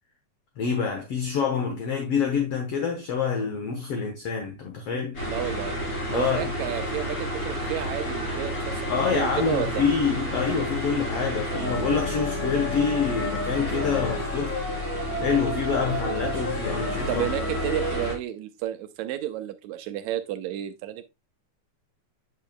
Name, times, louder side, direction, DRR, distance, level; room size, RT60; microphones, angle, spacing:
voice 1, 0.6-5.2 6.1-6.5 8.9-14.6 15.2-17.3, left 6 dB, 60° left, 1.7 m, -26 dB
sound 1, 5.1-18.1, equal, 25° left, 3.7 m, -30 dB
voice 2, 5.3-5.7 6.1-9.8 17.1-21.0, right 12 dB, 85° right, 1.7 m, -31 dB
8.2 x 6.8 x 2.2 m
omnidirectional pair, 3.8 m